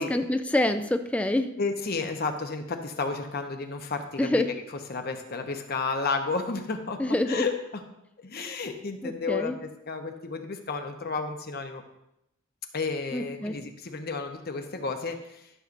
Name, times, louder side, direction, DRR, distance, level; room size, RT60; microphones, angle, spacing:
voice 1, 0.0-1.6 4.2-4.5 7.0-7.5 9.0-9.6 13.1-13.6, left 1 dB, 5° left, 8 dB, 0.3 m, -26 dB
voice 2, 1.6-4.6 4.9-7.8 8.2-9.5 9.9-11.8 12.7-15.5, left 4 dB, 50° left, 6 dB, 0.8 m, -32 dB
12.5 x 6.5 x 2.6 m, 0.83 s
head